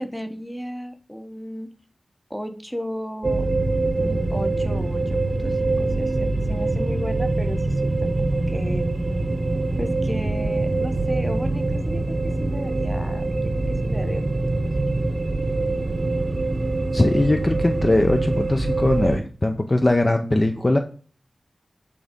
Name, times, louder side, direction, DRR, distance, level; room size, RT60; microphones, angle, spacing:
voice 1, 0.0-1.7 2.3-3.5 4.0-8.9 9.8-14.9, equal, 5° left, 7 dB, 0.9 m, -34 dB
sound 1, 3.2-19.2, right 2 dB, 35° right, 0.8 m, -24 dB
voice 2, 16.9-20.8, left 1 dB, 25° left, 5 dB, 0.5 m, -20 dB
8.5 x 3.6 x 5.2 m, 0.41 s
wide cardioid pair, 95°, 0 cm